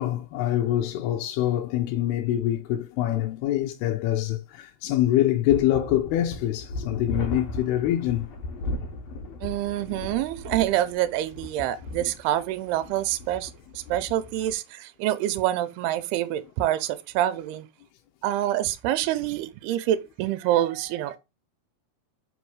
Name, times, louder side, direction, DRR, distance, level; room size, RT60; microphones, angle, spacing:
voice 1, 0.0-8.3 8.7-8.8 9.3-9.4, left 13 dB, 85° left, 2.6 m, -25 dB
sound 1, 5.5-14.5, left 2 dB, 55° left, 2.0 m, -36 dB
voice 2, 9.4-17.7 18.2-21.2, right 13 dB, 80° right, 2.7 m, -26 dB
6.2 x 5.5 x 4.7 m
omnidirectional pair, 4.6 m